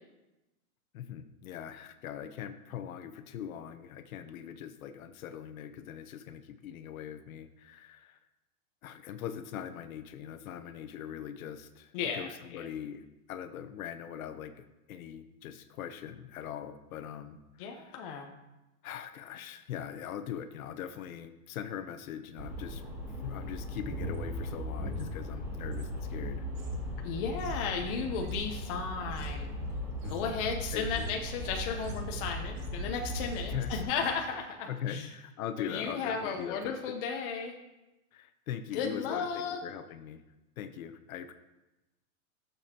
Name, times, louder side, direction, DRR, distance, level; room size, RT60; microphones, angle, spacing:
voice 1, 0.9-8.2 8.8-13.0 13.3-18.0 18.8-22.8 23.2-26.5 30.0-30.4 30.7-31.1 33.5-33.8 34.7-36.9 38.1-40.2 40.6-41.3, left 9 dB, 70° left, 10 dB, 1.0 m, -41 dB
voice 2, 11.9-12.6 17.6-18.3 27.0-29.5 30.1-35.1 35.6-37.5 38.7-39.6, left 6 dB, 40° left, 2 dB, 0.8 m, -34 dB
sound 1, 22.4-33.8, equal, 5° right, 3.6 m, -38 dB
sound 2, 23.6-25.9 26.2-32.9 33.2-33.6 33.9-34.2, right 3 dB, 25° right, 1.0 m, -46 dB
14.5 x 7.1 x 2.9 m, 1.0 s
supercardioid pair, 155°, 44 cm